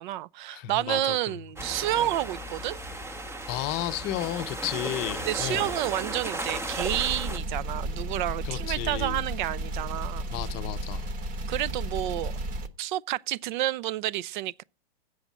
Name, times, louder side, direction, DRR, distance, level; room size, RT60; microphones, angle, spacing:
voice 1, 0.0-2.8 5.2-10.2 11.5-12.3 12.8-14.6, right 14 dB, 55° right, 0.5 m, -30 dB
voice 2, 0.5-1.3 3.5-5.7 8.4-9.2 10.3-11.1, left 14 dB, 35° left, 0.6 m, -33 dB
sound 1, 1.6-7.4, right 1 dB, 10° right, 0.7 m, -35 dB
sound 2, 6.8-12.7, right 1 dB, 30° right, 1.0 m, -33 dB
7.9 x 6.3 x 7.2 m
hypercardioid pair, 135°, 29 cm